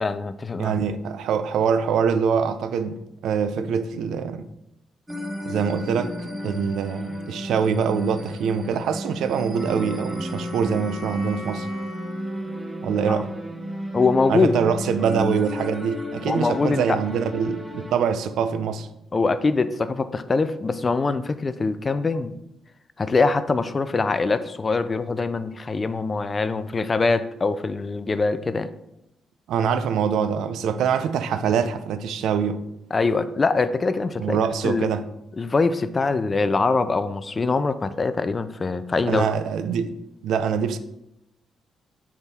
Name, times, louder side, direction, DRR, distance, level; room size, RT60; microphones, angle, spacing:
voice 1, 0.0-0.8 13.1-13.2 13.9-14.5 16.3-17.0 19.1-22.3 23.0-28.7 32.9-34.4 34.6-34.9 35.4-39.3, left 3 dB, 20° left, 0.3 m, -23 dB
voice 2, 0.6-4.5 5.5-11.7 12.8-13.3 14.3-18.9 29.5-32.6 34.2-35.0 39.1-40.0 40.2-40.8, right 6 dB, 80° right, 0.5 m, -24 dB
sound 1, 5.1-18.0, equal, 5° right, 0.9 m, -33 dB
Wind instrument woodwind instrument, 9.3-13.4, left 1 dB, 55° right, 1.6 m, -40 dB
7.9 x 3.6 x 4.1 m
cardioid pair, 175°, 0 cm